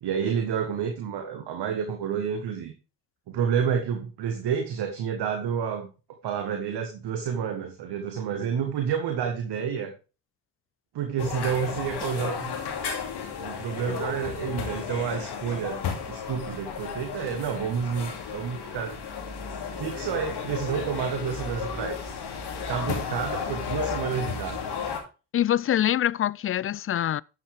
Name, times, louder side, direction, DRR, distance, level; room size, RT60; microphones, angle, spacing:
voice 1, 0.0-2.7 3.3-5.9 6.2-9.9 10.9-12.5 13.4-19.0 19.7-22.1 22.7-24.7, right 7 dB, 65° right, 1.6 m, -29 dB
sound 1, 11.2-25.0, left 6 dB, 65° left, 2.8 m, -33 dB
voice 2, 25.3-27.2, left 11 dB, 35° left, 0.4 m, -25 dB
11.5 x 7.3 x 3.4 m
hypercardioid pair, 40°, 43 cm